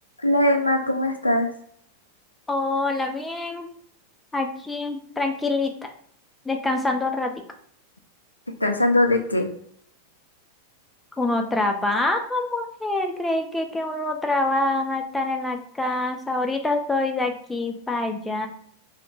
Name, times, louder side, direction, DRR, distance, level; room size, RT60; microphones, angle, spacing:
voice 1, 0.2-1.5 8.6-9.5, left 1 dB, 85° left, 4 dB, 0.4 m, -20 dB
voice 2, 2.5-3.7 4.3-5.9 6.5-7.3 11.2-18.5, left 2 dB, 10° left, 4 dB, 0.4 m, -25 dB
2.4 x 2.1 x 3.0 m, 0.64 s
figure-of-eight pair, 90°, 0 cm